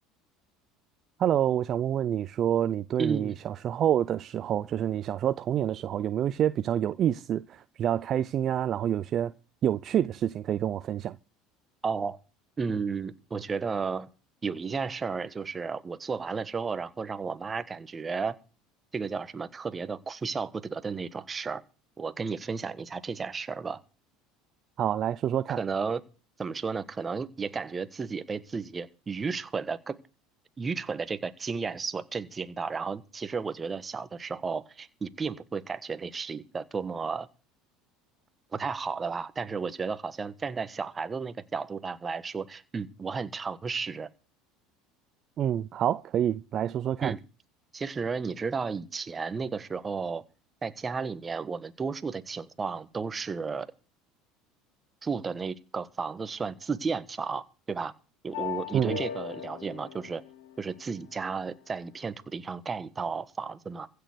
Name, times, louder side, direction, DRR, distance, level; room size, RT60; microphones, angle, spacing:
voice 1, 1.2-9.3 9.6-11.2 24.8-25.6 45.4-47.2 58.7-59.0, right 10 dB, 45° right, 0.6 m, -27 dB
voice 2, 3.0-3.3 11.8-12.2 12.6-14.1 14.4-18.4 18.9-21.6 22.0-23.8 25.5-26.0 26.4-30.0 30.6-37.3 38.5-44.1 47.0-47.2 47.7-50.2 50.6-53.7 55.0-57.9 58.2-60.2 60.6-63.9, right 5 dB, 25° right, 1.4 m, -33 dB
sound 1, 58.3-61.3, left 10 dB, 80° left, 2.5 m, -38 dB
15.5 x 6.9 x 8.0 m
supercardioid pair, 95°, 0 cm